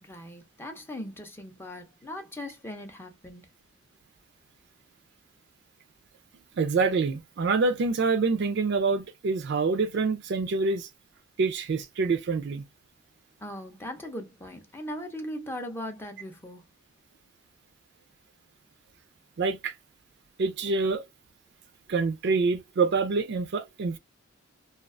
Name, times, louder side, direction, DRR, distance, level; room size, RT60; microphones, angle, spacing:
voice 1, 0.0-3.5 13.4-16.6, left 1 dB, 10° left, 0.4 m, -39 dB
voice 2, 6.6-10.9 11.4-12.7 19.4-19.7 20.4-21.0 21.9-24.0, right 4 dB, 55° right, 0.4 m, -26 dB
2.3 x 2.2 x 2.5 m
head